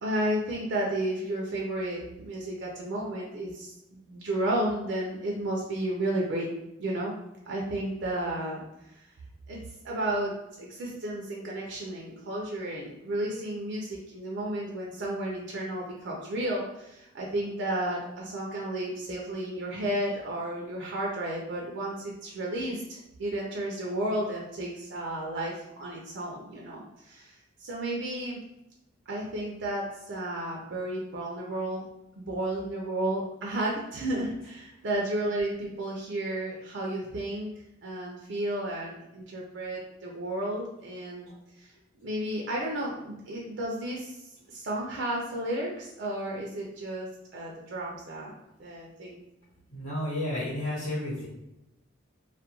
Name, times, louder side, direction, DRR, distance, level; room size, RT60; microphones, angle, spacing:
voice 1, 0.0-6.5 6.8-7.1 7.5-8.6 8.9-9.1 9.5-9.6 9.8-10.3 10.6-27.3 27.6-28.4 29.1-31.8 32.2-37.5 37.8-41.7 42.0-44.2 44.5-49.2, right 1 dB, 60° right, -3 dB, 0.4 m, -32 dB
voice 2, 49.7-51.3, left 1 dB, 80° left, -10 dB, 1.1 m, -32 dB
2.2 x 2.1 x 2.9 m, 0.90 s
head